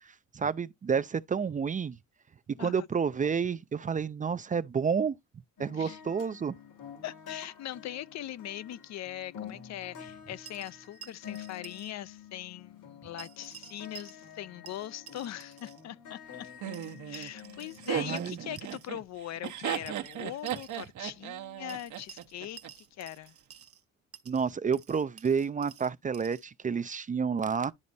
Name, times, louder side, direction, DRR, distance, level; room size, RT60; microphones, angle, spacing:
voice 1, 0.0-2.0 2.5-5.1 5.6-6.6 18.0-18.4 24.3-27.7, right 6 dB, 25° right, 0.4 m, -30 dB
sound 1, 5.6-18.6, left 8 dB, 80° left, 2.5 m, -48 dB
voice 2, 7.0-16.5 17.0-23.3, left 12 dB, 60° left, 0.5 m, -41 dB
sound 2, 10.4-11.9 12.2-12.3 13.2-14.4 14.7-15.8 16.7-18.9 19.9-20.9 21.7-23.8 24.1-26.5, right 9 dB, 50° right, 0.9 m, -52 dB
Laughter, 16.6-22.7, right 11 dB, 70° right, 1.0 m, -36 dB
11.0 x 4.2 x 2.7 m
cardioid pair, 90°, 30 cm